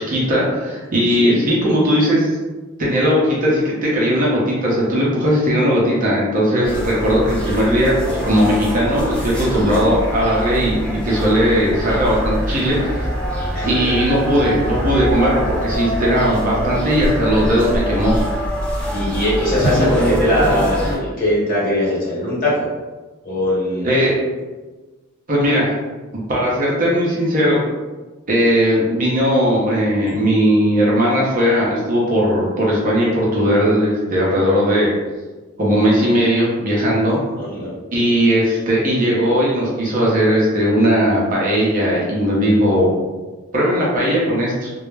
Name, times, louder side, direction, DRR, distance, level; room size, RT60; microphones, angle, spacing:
voice 1, 0.0-2.3 2.8-13.0 13.6-18.1 23.8-24.1 25.3-25.7 26.3-27.6 28.3-35.0 35.6-37.2 37.9-42.9 43.5-44.7, equal, 40° right, -5 dB, 0.6 m, -17 dB
sound 1, 6.6-21.0, equal, 5° left, 0.5 m, -24 dB
voice 2, 18.9-22.6 23.2-24.0 37.4-37.7, left 1 dB, 40° left, -8 dB, 1.1 m, -20 dB
2.2 x 2.0 x 3.2 m, 1.2 s
head